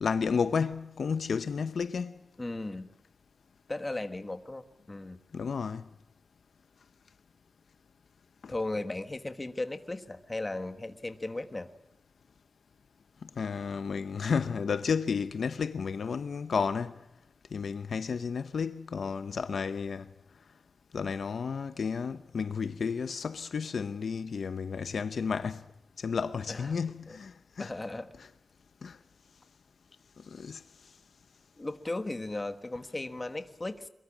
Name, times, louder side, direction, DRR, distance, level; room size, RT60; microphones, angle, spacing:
voice 1, 0.0-2.2 5.3-5.8 8.4-8.5 13.2-16.9 17.5-20.0 20.9-25.6 26.0-27.7 28.8-29.0 30.2-30.6, left 5 dB, 65° left, 0.8 m, -32 dB
voice 2, 2.4-2.9 3.7-5.2 8.5-11.7 26.5-26.8 27.1-27.2 27.6-28.1 31.6-33.9, left 2 dB, 20° left, 1.4 m, -36 dB
23.0 x 22.5 x 7.3 m
wide cardioid pair, 155°, 0 cm